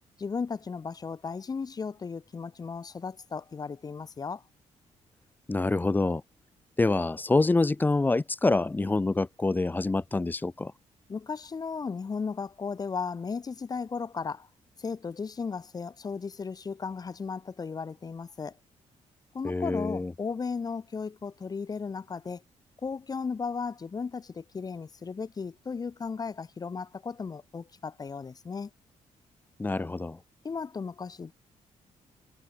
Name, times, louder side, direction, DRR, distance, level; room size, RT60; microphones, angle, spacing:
voice 1, 0.2-4.4 11.1-14.5 14.8-18.5 19.3-22.4 22.8-28.7 30.4-31.3, left 5 dB, 30° left, 3.3 m, -35 dB
voice 2, 5.5-6.2 6.8-10.7 19.4-20.1 29.6-30.2, left 3 dB, 15° left, 1.0 m, -26 dB
cardioid pair, 145°, 13 cm